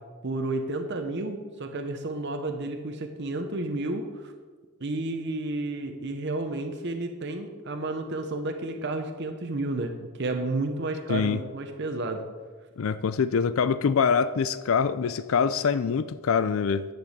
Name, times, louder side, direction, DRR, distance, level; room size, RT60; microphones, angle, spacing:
voice 1, 0.2-4.3 4.8-12.3, right 2 dB, 50° right, 5 dB, 0.9 m, -31 dB
voice 2, 11.1-11.4 12.8-16.9, left 6 dB, 70° left, 13 dB, 0.4 m, -24 dB
10.0 x 6.1 x 8.0 m, 1.4 s
head